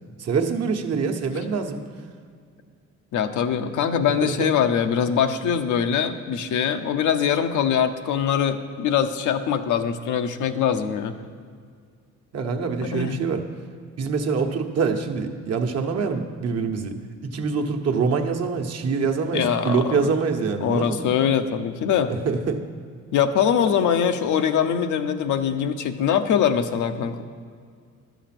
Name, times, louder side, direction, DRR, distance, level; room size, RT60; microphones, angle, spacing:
voice 1, 0.2-1.8 4.2-4.5 12.3-13.4 14.0-17.0 17.2-21.1 22.1-22.6, right 5 dB, 55° right, 4 dB, 1.1 m, -25 dB
voice 2, 3.1-11.2 12.8-13.2 19.3-20.1 20.6-22.1 23.1-27.2, left 8 dB, 80° left, 7 dB, 0.8 m, -23 dB
11.5 x 7.1 x 5.9 m, 2.1 s
cardioid pair, 90°, 30 cm